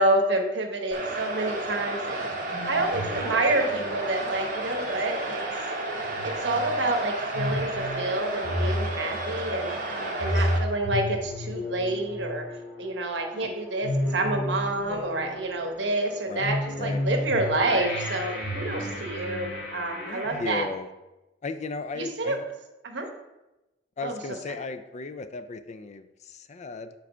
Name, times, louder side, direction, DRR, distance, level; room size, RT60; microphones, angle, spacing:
voice 1, 0.0-2.2 2.7-5.4 6.2-9.8 10.2-12.5 12.8-20.7 22.0-22.4 22.8-23.1 24.0-24.1 24.5-24.6, right 2 dB, 70° right, 4 dB, 1.0 m, -28 dB
sound 1, 0.9-10.6, right 2 dB, 50° right, 1.1 m, -32 dB
sound 2, 2.0-20.4, left 1 dB, 75° left, 2.1 m, -33 dB
voice 2, 9.9-10.5 13.3-13.6 16.3-17.0 20.1-20.9 21.4-22.5 24.0-26.9, left 3 dB, 40° left, 10 dB, 0.4 m, -36 dB
5.0 x 4.6 x 5.5 m, 0.99 s
head